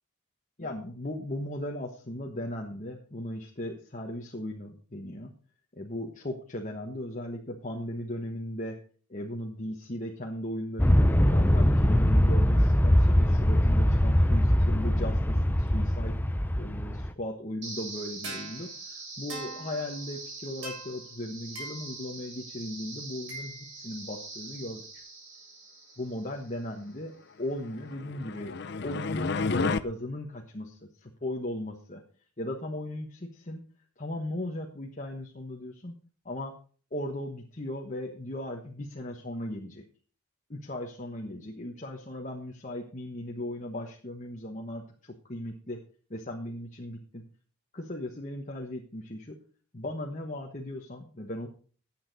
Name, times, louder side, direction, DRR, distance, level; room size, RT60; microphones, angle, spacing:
voice 1, 0.6-5.3 5.7-8.8 9.1-16.2 16.5-25.0 26.0-27.1 27.4-28.5 28.8-32.0 32.4-33.6 34.0-36.0 36.2-36.5 36.9-39.8 40.5-45.8 46.1-47.2 47.7-49.4 49.7-51.5, left 1 dB, 35° left, 1 dB, 1.2 m, -37 dB
Aircraft, 10.8-17.1, equal, 10° left, 0.6 m, -22 dB
sound 1, 17.6-26.6, right 3 dB, 55° right, 7.4 m, -42 dB
sound 2, 27.9-29.8, left 4 dB, 50° left, 0.6 m, -30 dB
14.5 x 8.8 x 4.1 m, 0.41 s
head